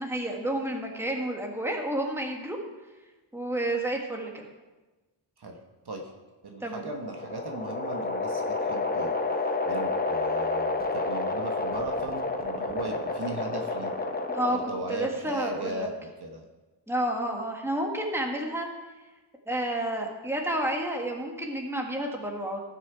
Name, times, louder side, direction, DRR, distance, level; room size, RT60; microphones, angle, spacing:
voice 1, 0.0-2.6 3.3-4.5 6.6-6.8 14.3-14.6 14.9-15.9 16.9-18.7 19.5-22.6, right 1 dB, 5° right, 1 dB, 1.6 m, -30 dB
voice 2, 6.4-9.1 9.6-13.9 14.5-16.4, right 2 dB, 55° right, 2 dB, 1.3 m, -37 dB
sound 1, 6.8-14.9, left 3 dB, 20° left, 0.8 m, -30 dB
16.5 x 6.2 x 4.8 m, 1.2 s
wide cardioid pair, 115°, 45 cm